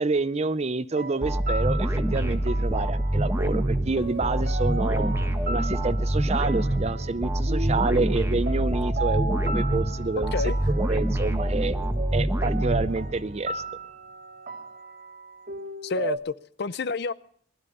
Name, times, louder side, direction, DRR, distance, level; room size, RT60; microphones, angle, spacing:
voice 1, 0.0-5.1 5.5-10.3 10.7-11.8 12.1-13.6, right 3 dB, 35° right, 0.5 m, -28 dB
sound 1, 0.9-16.2, right 2 dB, 50° right, 1.9 m, -37 dB
sound 2, 1.2-13.5, right 1 dB, 15° right, 1.4 m, -26 dB
voice 2, 15.8-17.1, left 4 dB, 60° left, 0.6 m, -29 dB
19.5 x 12.5 x 5.4 m
head